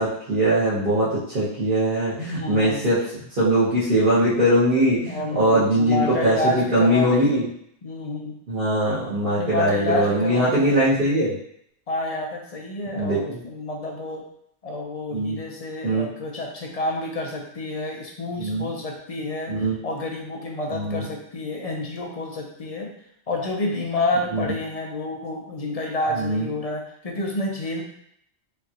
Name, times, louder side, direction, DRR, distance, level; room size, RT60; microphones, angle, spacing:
voice 1, 0.0-3.0 3.3-7.5 8.5-11.4 12.9-13.4 15.1-15.4 15.8-16.1 18.4-18.7 19.5-19.8 20.7-21.0 24.3-24.4 26.1-26.5, right 1 dB, 50° right, -11 dB, 1.3 m, -21 dB
voice 2, 2.4-2.9 5.1-7.4 7.8-8.4 9.4-10.7 11.9-14.3 14.6-22.9 23.3-27.8, left 2 dB, 40° left, 0 dB, 0.6 m, -29 dB
5.1 x 2.4 x 2.9 m, 0.70 s
omnidirectional pair, 1.2 m